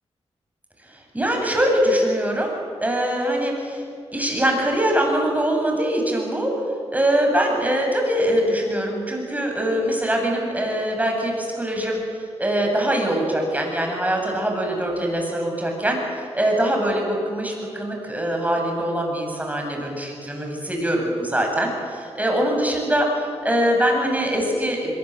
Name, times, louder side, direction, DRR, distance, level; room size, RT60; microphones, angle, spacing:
voice 1, 0.9-3.8 4.1-6.5 6.9-12.0 12.4-25.0, right 1 dB, 15° right, 1 dB, 8.0 m, -23 dB
25.0 x 22.0 x 7.9 m, 2.3 s
cardioid pair, 70°, 11 cm